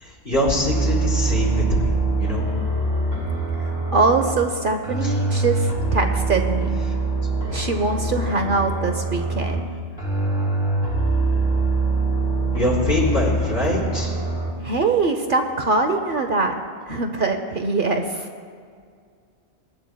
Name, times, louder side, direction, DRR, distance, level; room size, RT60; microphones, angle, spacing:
voice 1, 0.0-1.5 1.8-1.9 2.2-2.5 12.5-14.1, left 1 dB, 55° left, -5 dB, 4.0 m, -23 dB
sound 1, 0.6-4.5 4.8-9.7 10.0-14.5, right 2 dB, 40° left, 2.6 m, -24 dB
voice 2, 3.6-6.8 7.5-9.7 14.6-18.3, right 3 dB, 55° right, 5 dB, 0.8 m, -23 dB
23.0 x 11.0 x 2.2 m, 2.2 s
omnidirectional pair, 1.2 m